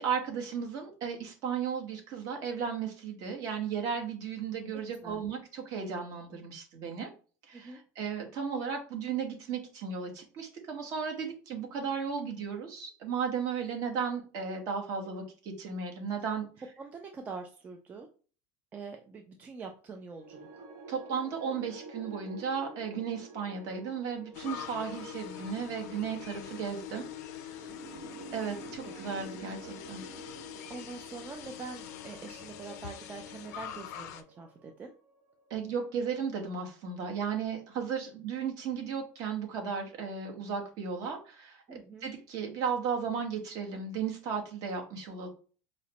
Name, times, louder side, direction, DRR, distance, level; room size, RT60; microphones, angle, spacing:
voice 1, 0.0-7.1 7.4-16.5 20.9-27.0 28.3-30.0 35.5-45.3, right 6 dB, 45° right, 2 dB, 1.1 m, -35 dB
voice 2, 16.8-18.1 18.7-20.6 27.6-28.1 28.8-28.9 30.7-34.9 41.7-42.1, right 4 dB, 20° right, 3 dB, 0.3 m, -45 dB
sound 1, 20.1-36.4, right 3 dB, 85° right, 0.9 m, -49 dB
sound 2, 24.3-34.2, left 10 dB, 80° left, 0.4 m, -44 dB
4.8 x 2.1 x 2.8 m, 0.38 s
supercardioid pair, 155°, 9 cm